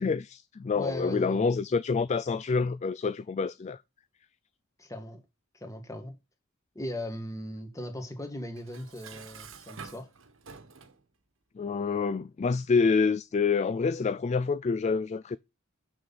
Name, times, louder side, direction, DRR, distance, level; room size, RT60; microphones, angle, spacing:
voice 1, 0.0-3.8 11.6-15.4, left 5 dB, 35° left, 0.3 m, -27 dB
voice 2, 0.7-1.4 4.8-5.2 5.5-6.1 6.7-10.1, left 1 dB, 15° left, 1.8 m, -37 dB
Dishes pots and pans, 8.6-11.0, right 5 dB, 70° right, 1.2 m, -48 dB
7.1 x 6.3 x 4.1 m
head